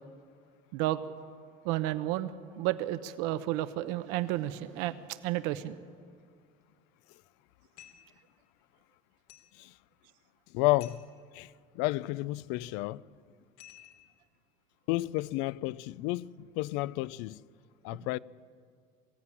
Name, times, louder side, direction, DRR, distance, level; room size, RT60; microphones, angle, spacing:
voice 1, 1.6-2.3 2.6-5.8, right 15 dB, 75° right, 0.9 m, -31 dB
sound 1, 7.8-8.2 9.3-9.6 10.8-11.2 13.6-14.2, left 11 dB, 85° left, 3.2 m, -53 dB
voice 2, 10.5-11.0 11.3-13.0 14.9-17.4 17.8-18.2, left 19 dB, 70° left, 0.5 m, -31 dB
22.0 x 16.0 x 9.8 m
cardioid pair, 155°, 19 cm